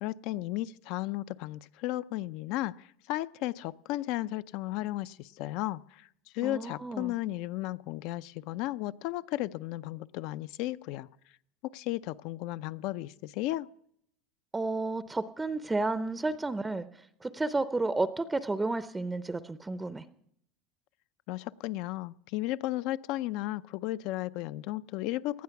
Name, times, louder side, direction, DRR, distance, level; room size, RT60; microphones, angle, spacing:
voice 1, 0.0-6.1 6.3-11.1 11.6-13.7 21.3-25.4, left 16 dB, 60° left, 15 dB, 0.5 m, -34 dB
voice 2, 6.4-7.1 14.5-20.0, right 3 dB, 10° right, 12 dB, 0.6 m, -32 dB
18.5 x 12.5 x 5.9 m, 0.71 s
supercardioid pair, 130°, 0 cm